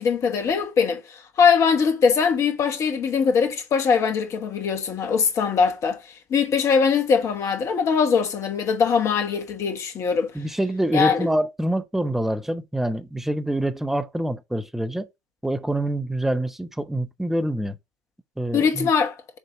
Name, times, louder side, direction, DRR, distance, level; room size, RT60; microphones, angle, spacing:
voice 1, 0.0-6.0 6.3-10.3 10.9-11.3 18.5-19.1, left 6 dB, 35° left, 1.3 m, -21 dB
voice 2, 10.3-15.1 15.4-17.8 18.4-18.9, right 1 dB, 5° right, 0.9 m, -26 dB
7.3 x 2.8 x 5.8 m
figure-of-eight pair, 70°, 8 cm